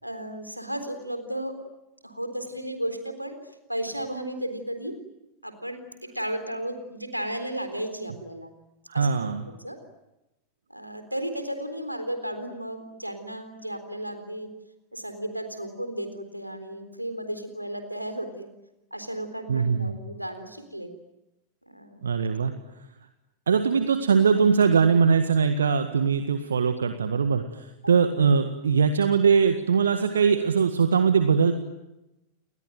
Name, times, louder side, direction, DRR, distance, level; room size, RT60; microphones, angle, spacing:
voice 1, 0.0-1.6 2.0-5.0 5.4-8.5 8.9-9.8 10.7-14.5 14.9-18.5 18.9-20.9 21.7-22.0 27.8-27.9, right 1 dB, 90° right, 8 dB, 3.9 m, -34 dB
voice 2, 8.9-9.4 19.5-20.0 22.0-22.5 23.5-31.5, right 6 dB, 70° right, 8 dB, 1.7 m, -21 dB
30.0 x 21.5 x 9.2 m, 0.94 s
figure-of-eight pair, 90°, 0 cm